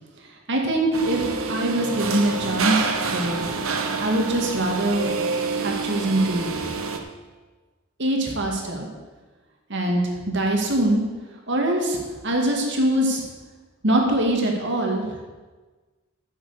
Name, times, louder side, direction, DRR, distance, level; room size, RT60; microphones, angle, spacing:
voice 1, 0.5-3.4 4.0-5.1 5.6-6.5 8.0-8.9 9.7-11.0 11.5-13.2 13.8-15.1, right 1 dB, 60° right, 1 dB, 2.2 m, -23 dB
sound 1, 0.9-7.0, right 4 dB, 85° right, 1.1 m, -27 dB
10.5 x 7.4 x 6.6 m, 1.3 s
head